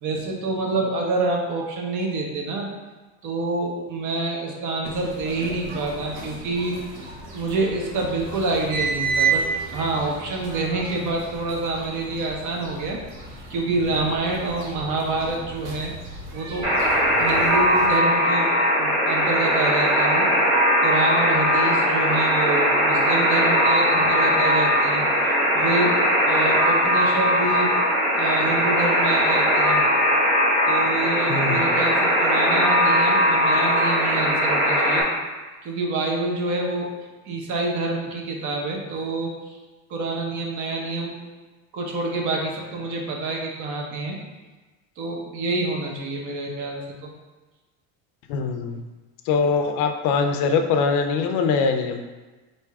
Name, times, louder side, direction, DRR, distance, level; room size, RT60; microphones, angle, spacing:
voice 1, 0.0-2.7 3.2-6.8 7.3-9.4 9.7-13.0 13.5-15.9 16.3-16.7 17.2-20.2 20.8-25.9 26.2-27.7 28.1-29.8 30.7-35.1 35.6-36.9 37.3-39.3 39.9-41.1 41.7-44.2 45.0-47.1, right 2 dB, 50° right, 0 dB, 0.9 m, -27 dB
sound 1, 4.8-17.9, right 5 dB, 70° right, 1.1 m, -32 dB
Alarm, 16.6-35.0, equal, 15° right, 1.3 m, -20 dB
voice 2, 31.3-31.7 48.3-48.8 49.3-52.0, left 5 dB, 55° left, 5 dB, 0.5 m, -22 dB
3.5 x 2.7 x 4.6 m, 1.2 s
cardioid pair, 155°, 38 cm